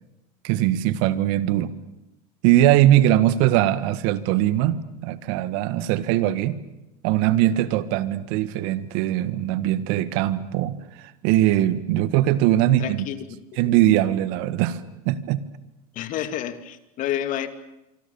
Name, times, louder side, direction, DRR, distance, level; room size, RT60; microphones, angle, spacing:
voice 1, 0.4-1.7 2.4-6.6 7.0-13.1 13.6-15.4, right 13 dB, 60° right, 14 dB, 1.8 m, -21 dB
voice 2, 12.8-13.2 15.9-17.5, left 11 dB, 45° left, 11 dB, 2.4 m, -29 dB
26.0 x 25.0 x 7.2 m, 0.91 s
supercardioid pair, 125°, 19 cm